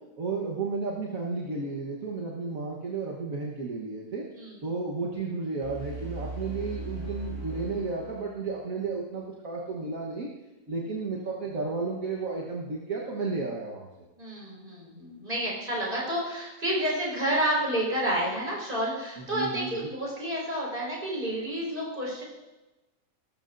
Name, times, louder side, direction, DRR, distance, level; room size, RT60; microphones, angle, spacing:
voice 1, 0.2-4.2 4.6-10.3 10.7-13.9 19.2-19.9, right 4 dB, 70° right, -3 dB, 1.8 m, -33 dB
sound 1, 5.6-8.7, right 2 dB, 30° left, 4.8 m, -38 dB
voice 2, 14.2-22.2, right 1 dB, 35° right, -5 dB, 5.0 m, -30 dB
18.5 x 13.5 x 2.6 m, 1.1 s
omnidirectional pair, 1.5 m